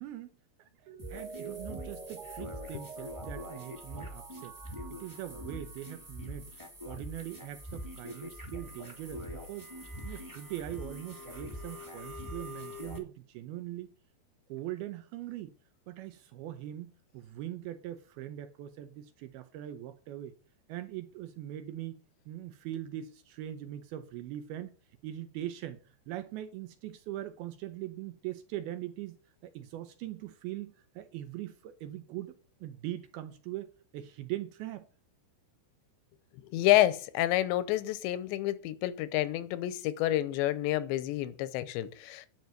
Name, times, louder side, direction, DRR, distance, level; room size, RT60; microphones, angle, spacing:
voice 1, 0.0-4.6 4.9-6.5 6.9-9.7 10.0-13.9 14.5-15.5 15.9-20.4 20.7-24.7 25.0-29.2 29.4-32.4 32.6-34.9, right 13 dB, 80° right, 2.3 m, -41 dB
Mallet percussion, 0.9-6.4 6.7-6.8, right 5 dB, 55° right, 2.5 m, -47 dB
sound 1, 1.0-13.0, left 1 dB, 5° right, 1.8 m, -44 dB
voice 2, 36.4-42.3, left 15 dB, 90° left, 3.1 m, -29 dB
10.5 x 5.3 x 7.9 m
omnidirectional pair, 5.0 m